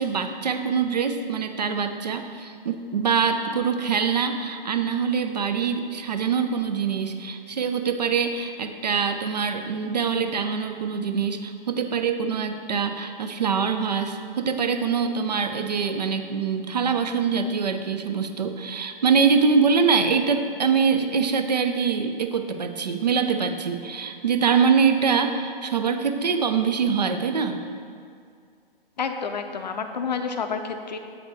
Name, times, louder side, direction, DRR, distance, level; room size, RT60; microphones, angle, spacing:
voice 1, 0.0-27.6, right 6 dB, 45° right, 7 dB, 0.5 m, -24 dB
voice 2, 29.0-31.0, left 5 dB, 45° left, 7 dB, 0.6 m, -29 dB
8.1 x 4.9 x 3.5 m, 2.3 s
figure-of-eight pair, 135°, 29 cm